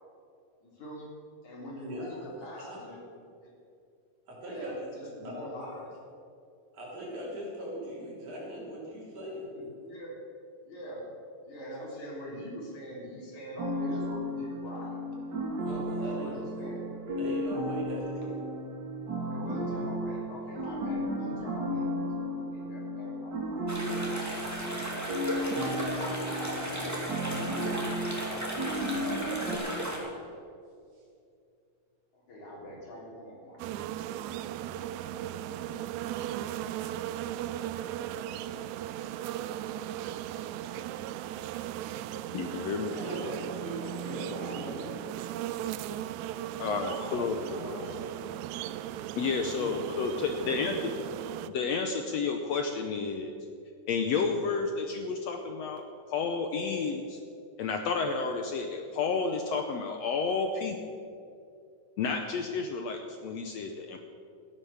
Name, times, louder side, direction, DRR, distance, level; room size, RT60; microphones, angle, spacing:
voice 1, 0.6-1.1 1.4-3.0 3.4-3.5 4.5-5.9 9.5-10.2 10.7-11.1 11.5-15.0 16.0-16.8 19.2-23.9 32.1-33.8 42.8-43.4 43.8-44.7 46.6-48.3 49.3-50.6, equal, 60° left, -4 dB, 4.8 m, -43 dB
voice 2, 1.8-2.8 4.3-4.9 5.2-5.4 6.7-9.5 15.6-16.3 17.2-18.4 42.9-44.9, equal, 60° right, -5 dB, 5.0 m, -40 dB
sound 1, 13.6-29.6, equal, 40° right, 2.0 m, -34 dB
sound 2, 23.7-30.0, equal, 5° right, 1.7 m, -35 dB
sound 3, 33.6-51.5, right 12 dB, 85° right, 1.6 m, -37 dB
voice 3, 42.3-42.9 46.6-47.4 49.2-50.9 51.5-53.3 53.9-55.8 56.1-57.2 57.6-60.8 62.0-64.0, left 5 dB, 75° left, 5 dB, 1.5 m, -31 dB
14.5 x 10.5 x 7.2 m, 2.5 s
omnidirectional pair, 3.9 m